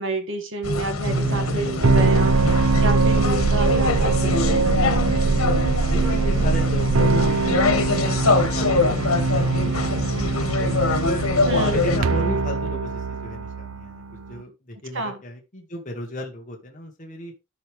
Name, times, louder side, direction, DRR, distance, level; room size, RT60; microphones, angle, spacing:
voice 1, 0.0-2.4 2.8-4.7 11.4-11.8 14.9-15.2, right 2 dB, 60° right, 1.9 m, -29 dB
sound 1, 0.6-12.0, left 3 dB, 90° left, 1.6 m, -24 dB
sound 2, 1.1-14.4, right 3 dB, 80° right, 0.7 m, -22 dB
voice 2, 5.7-11.2 11.7-17.3, left 1 dB, 40° left, 1.6 m, -35 dB
13.5 x 4.9 x 3.2 m
head